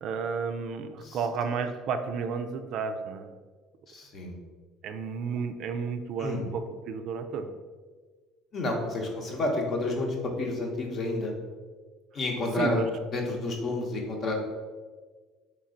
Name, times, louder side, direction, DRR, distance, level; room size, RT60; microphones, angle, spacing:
voice 1, 0.0-3.3 4.8-7.5 12.6-12.9, right 5 dB, 60° right, 8 dB, 0.3 m, -32 dB
voice 2, 3.9-4.3 6.2-6.4 8.5-11.3 12.1-14.3, left 2 dB, 50° left, 1 dB, 0.9 m, -30 dB
3.3 x 3.1 x 3.8 m, 1.4 s
hypercardioid pair, 75°, 0 cm